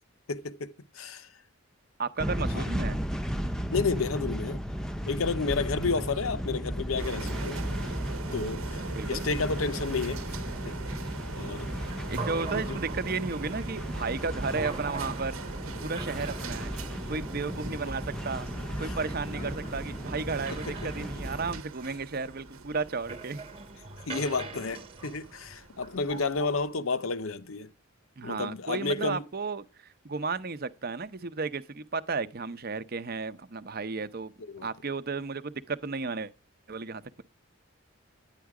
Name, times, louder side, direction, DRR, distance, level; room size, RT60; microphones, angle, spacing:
voice 1, 0.3-1.3 2.5-2.6 3.7-4.6 5.1-7.6 8.3-10.2 10.6-10.8 11.4-11.9 12.4-12.8 18.8-18.9 19.3-19.5 20.5-20.9 24.1-27.7 28.2-29.3 34.5-34.7, left 4 dB, 75° left, 0.8 m, -31 dB
voice 2, 2.0-3.0 8.9-9.5 12.1-15.4 15.8-16.7 17.1-18.5 18.8-23.4 28.2-34.3 34.6-36.3 36.7-37.2, right 4 dB, 45° right, 0.7 m, -33 dB
sound 1, 2.2-21.6, equal, 5° left, 0.6 m, -35 dB
sound 2, 7.0-26.7, right 4 dB, 80° right, 1.0 m, -43 dB
sound 3, 11.8-26.5, right 3 dB, 25° right, 1.1 m, -43 dB
10.5 x 9.2 x 4.8 m
head